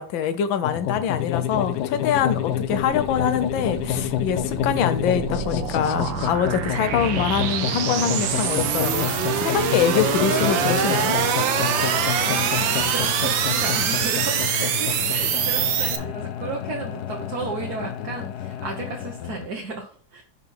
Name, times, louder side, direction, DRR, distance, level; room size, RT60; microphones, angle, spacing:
voice 1, 0.0-11.2, left 8 dB, 85° left, 1.5 m, -24 dB
sound 1, 0.6-19.5, left 11 dB, 70° left, 1.0 m, -29 dB
sound 2, 2.1-16.0, right 8 dB, 85° right, 1.5 m, -25 dB
voice 2, 12.2-20.2, right 4 dB, 55° right, 1.5 m, -34 dB
5.8 x 4.4 x 5.8 m
omnidirectional pair, 2.1 m